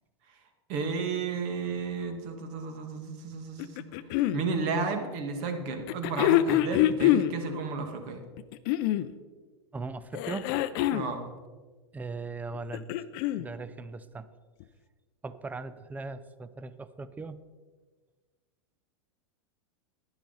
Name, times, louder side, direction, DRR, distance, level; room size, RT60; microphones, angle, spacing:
voice 1, 0.7-3.8 4.3-8.2 10.9-11.3, right 4 dB, 50° right, 6 dB, 1.8 m, -33 dB
sound 1, 3.6-4.4 5.9-7.3 8.4-9.1 10.1-11.1 12.5-13.5 14.6-14.7, left 13 dB, 55° left, 0.6 m, -25 dB
voice 2, 9.7-10.6 11.9-12.9 13.4-14.3 15.2-17.4, right 3 dB, 10° right, 14 dB, 0.5 m, -39 dB
11.0 x 10.5 x 4.0 m, 1.4 s
hypercardioid pair, 115°, 14 cm